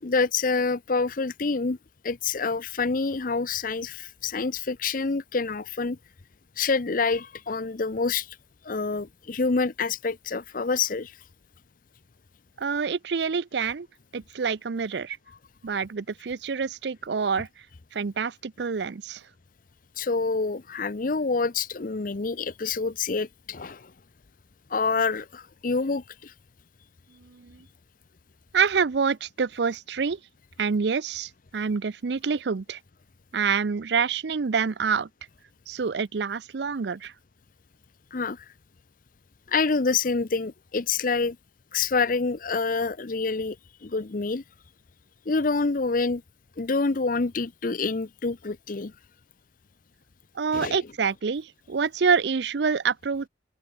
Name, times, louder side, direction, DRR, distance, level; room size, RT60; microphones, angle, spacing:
voice 1, 0.0-1.8 2.0-6.0 6.6-8.3 8.6-11.1 20.0-23.9 24.7-26.3 38.1-38.4 39.5-41.4 41.7-43.6 43.8-44.4 45.3-46.2 46.6-48.9 50.5-50.8, left 4 dB, 50° left, 0.7 m, -27 dB
voice 2, 12.6-13.9 14.1-15.2 15.6-17.5 17.9-19.2 27.2-27.7 28.5-30.2 30.6-32.8 33.3-35.1 35.7-37.1 50.3-53.3, right 5 dB, 65° right, 0.5 m, -27 dB
open air
head